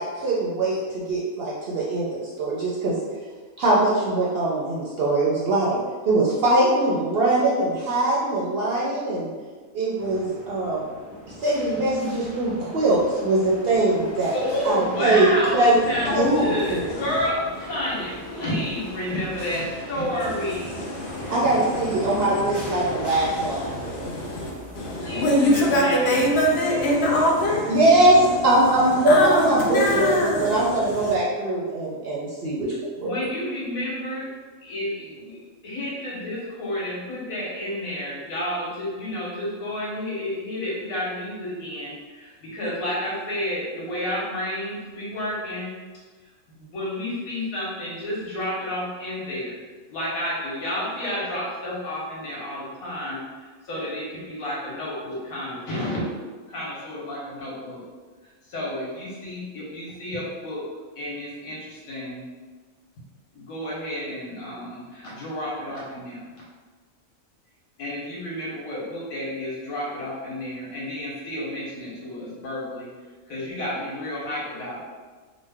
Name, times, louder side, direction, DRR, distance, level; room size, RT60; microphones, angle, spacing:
voice 1, 0.0-2.1 2.4-2.9 3.6-9.3 9.7-10.9 11.4-14.3 14.6-15.3 15.5-15.8 16.1-16.9 21.3-24.1 27.7-32.7 33.0-33.3, right 2 dB, 65° right, -5 dB, 0.6 m, -22 dB
sound 1, 10.0-26.0, left 1 dB, 35° left, 0.4 m, -39 dB
voice 2, 14.3-20.8 25.0-26.3 26.6-26.9 33.0-34.3 34.6-35.4 35.6-45.7 46.5-49.6 49.9-56.0 56.5-57.8 58.5-60.6 61.0-62.2 63.3-66.2 67.8-72.9 73.3-74.8, left 1 dB, 90° left, -5 dB, 1.4 m, -30 dB
voice 3, 15.8-17.2 20.2-31.2, equal, 60° left, -2 dB, 0.7 m, -25 dB
3.1 x 2.0 x 3.3 m, 1.4 s
omnidirectional pair, 1.4 m